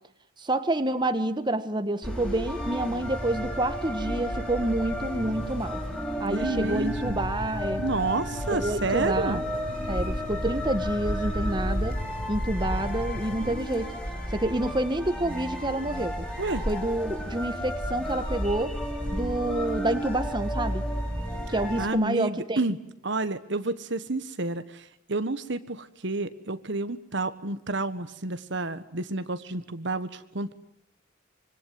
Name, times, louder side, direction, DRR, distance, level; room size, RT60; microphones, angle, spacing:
voice 1, 0.4-5.8 6.2-7.8 8.5-9.4 9.9-12.0 12.3-13.9 14.3-16.3 16.7-18.8 19.1-20.8 21.5-22.6, right 1 dB, 20° right, 10 dB, 1.5 m, -28 dB
sound 1, 2.0-21.9, equal, 5° left, 5.1 m, -32 dB
voice 2, 6.3-7.2 7.8-9.4 16.4-16.6 21.8-22.8 23.0-30.5, right 2 dB, 60° right, 12 dB, 1.5 m, -30 dB
sound 2, 6.6-13.6, equal, 90° right, 3.1 m, -40 dB
25.5 x 24.5 x 9.4 m, 0.74 s
head